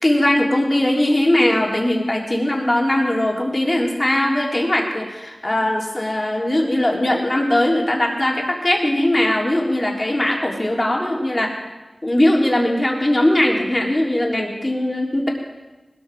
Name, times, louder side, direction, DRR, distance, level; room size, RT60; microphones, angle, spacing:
voice 1, 0.0-11.6 12.0-15.3, left 1 dB, 30° left, -1 dB, 3.6 m, -20 dB
20.0 x 13.5 x 5.0 m, 1.1 s
wide cardioid pair, 50°, 0 cm